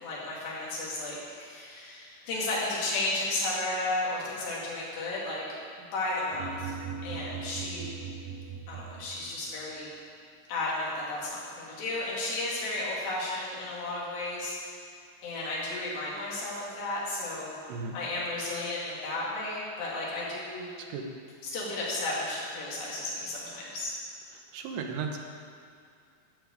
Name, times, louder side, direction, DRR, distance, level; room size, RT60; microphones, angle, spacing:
voice 1, 0.0-5.4 5.8-6.7 7.0-7.9 8.7-9.9 10.5-14.8 15.2-17.5 17.9-20.7 21.4-23.9, left 2 dB, 90° left, -6 dB, 4.6 m, -33 dB
sound 1, 6.3-9.5, right 6 dB, 40° right, 2.2 m, -39 dB
voice 2, 24.5-25.2, right 5 dB, 85° right, 3 dB, 3.1 m, -35 dB
12.5 x 4.9 x 8.2 m, 2.4 s
omnidirectional pair, 4.7 m